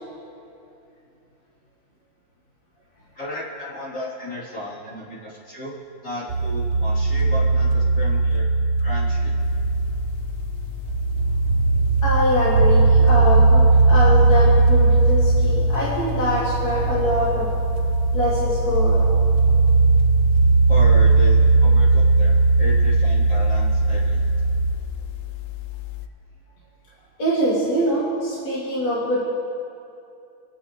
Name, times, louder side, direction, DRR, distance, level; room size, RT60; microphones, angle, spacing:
voice 1, 3.1-5.8 6.0-8.4 8.8-9.3 20.7-24.2, left 1 dB, 45° left, -9 dB, 3.3 m, -34 dB
sound 1, 6.3-24.7, right 3 dB, 60° right, 1.1 m, -18 dB
sound 2, 9.4-26.1, left 20 dB, 85° left, 0.8 m, -34 dB
voice 2, 12.0-17.5 18.1-19.0 27.2-29.2, equal, 65° left, -9 dB, 3.1 m, -23 dB
27.0 x 9.6 x 3.0 m, 2.6 s
omnidirectional pair, 2.2 m